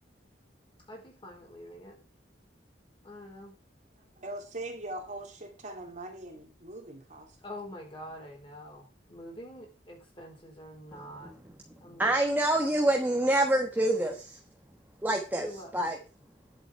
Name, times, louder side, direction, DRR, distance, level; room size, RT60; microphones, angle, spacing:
voice 1, 0.9-2.0 3.0-3.6 7.4-11.3 11.8-12.1 15.4-15.7, equal, 30° left, 0 dB, 4.6 m, -45 dB
voice 2, 4.0-7.3, right 1 dB, 45° right, 3 dB, 2.6 m, -41 dB
voice 3, 12.0-14.4 15.0-15.5 15.7-16.0, right 1 dB, 10° right, 2 dB, 1.2 m, -26 dB
11.0 x 7.6 x 4.5 m, 0.34 s
head